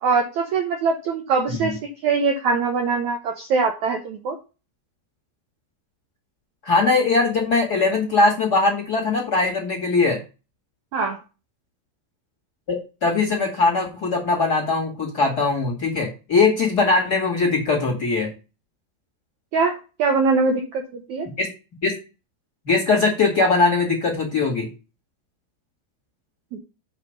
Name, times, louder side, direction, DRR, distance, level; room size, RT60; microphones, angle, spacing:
voice 1, 0.0-4.4 10.9-11.2 19.5-21.3 26.5-26.6, right 4 dB, 80° right, 4 dB, 1.6 m, -22 dB
voice 2, 6.6-10.2 12.7-18.3 21.4-21.5 21.8-21.9 22.6-24.7, left 3 dB, 40° left, -1 dB, 1.5 m, -21 dB
7.4 x 4.1 x 6.6 m, 0.31 s
omnidirectional pair, 4.8 m